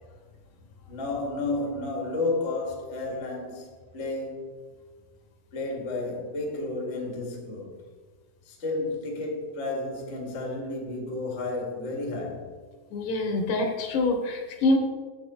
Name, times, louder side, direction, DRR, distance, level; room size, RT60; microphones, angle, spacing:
voice 1, 0.9-3.7 3.9-4.5 5.5-7.8 8.4-12.5, left 2 dB, 40° left, 1.0 m, -32 dB
voice 2, 12.9-14.8, left 2 dB, 75° left, 2.5 m, -25 dB
8.0 x 7.6 x 4.2 m
omnidirectional pair, 4.0 m